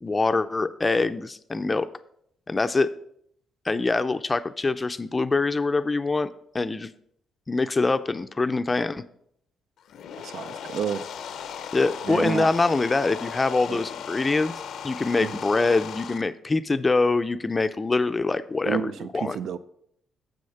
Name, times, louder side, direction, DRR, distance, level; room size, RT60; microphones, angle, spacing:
voice 1, 0.0-1.9 2.5-2.9 3.7-6.3 6.5-6.9 7.5-9.0 11.7-14.5 14.8-19.4, left 3 dB, 25° left, 12 dB, 0.4 m, -24 dB
sound 1, 9.8-16.2, left 8 dB, 70° left, 0.6 m, -37 dB
voice 2, 10.2-11.0 12.0-12.5 13.7-13.8 15.2-15.3 18.6-19.6, right 7 dB, 70° right, 12 dB, 0.5 m, -30 dB
7.1 x 6.4 x 5.7 m, 0.71 s
cardioid pair, 90°, 0 cm